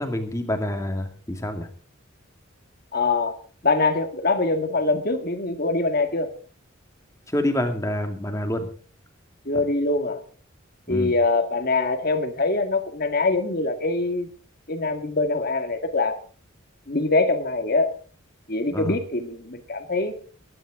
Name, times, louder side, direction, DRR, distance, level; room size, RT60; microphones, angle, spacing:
voice 1, 0.0-1.7 7.3-8.7 10.9-11.1 18.7-19.0, left 1 dB, 15° left, 5 dB, 2.3 m, -27 dB
voice 2, 2.9-3.4 3.6-6.3 9.5-10.2 10.9-14.3 14.7-16.2 16.9-17.9 18.5-20.2, left 3 dB, 45° left, 7 dB, 2.0 m, -23 dB
21.5 x 11.0 x 3.8 m, 0.40 s
head